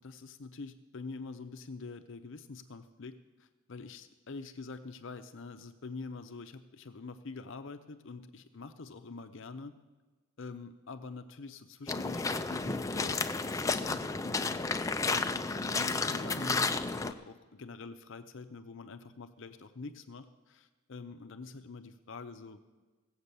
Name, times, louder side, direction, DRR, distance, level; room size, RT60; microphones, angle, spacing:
voice 1, 0.0-9.7 10.4-22.6, left 4 dB, 60° left, 8 dB, 0.6 m, -45 dB
sound 1, 11.9-17.1, left 3 dB, 15° left, 0.4 m, -32 dB
16.5 x 8.0 x 6.7 m, 1.3 s
head